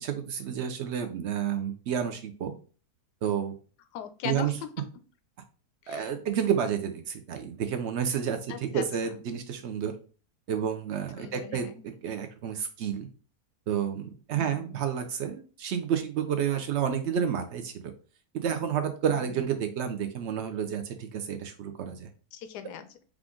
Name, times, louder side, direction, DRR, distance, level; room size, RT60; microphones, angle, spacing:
voice 1, 0.0-2.5 3.2-3.5 4.2-4.5 5.9-9.9 10.5-11.7 12.0-13.1 13.7-17.9 18.3-22.1, right 8 dB, 85° right, 7 dB, 0.6 m, -30 dB
voice 2, 3.9-4.9 5.8-6.1 8.5-9.2 11.2-11.8 14.3-14.8 22.3-22.9, left 9 dB, 90° left, 9 dB, 1.2 m, -40 dB
4.9 x 2.4 x 3.6 m, 0.38 s
omnidirectional pair, 1.7 m